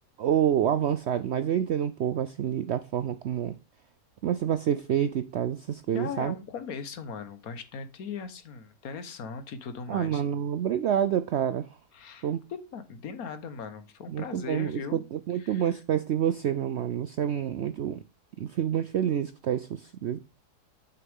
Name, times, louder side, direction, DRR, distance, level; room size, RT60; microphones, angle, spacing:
voice 1, 0.2-3.5 4.2-6.3 9.9-11.7 12.2-12.4 14.1-18.0 18.4-20.2, right 9 dB, 85° right, 0.6 m, -28 dB
voice 2, 5.8-10.2 11.9-15.0 15.3-15.8, left 6 dB, 65° left, 1.6 m, -39 dB
8.9 x 6.7 x 3.5 m
omnidirectional pair, 1.7 m